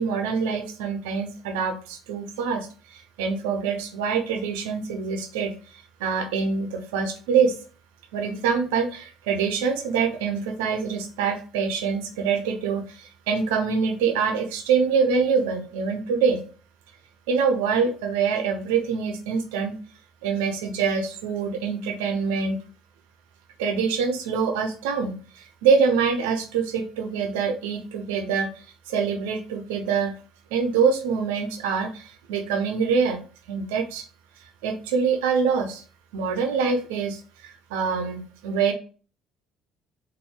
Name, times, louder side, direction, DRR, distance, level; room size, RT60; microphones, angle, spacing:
voice 1, 0.0-7.6 8.1-16.4 17.3-19.7 20.2-22.6 23.6-28.5 28.9-30.1 30.5-33.2 33.5-34.0 34.6-35.8 36.1-38.7, right 5 dB, 85° right, 5 dB, 0.6 m, -25 dB
4.2 x 2.6 x 4.7 m, 0.39 s
hypercardioid pair, 65°, 0 cm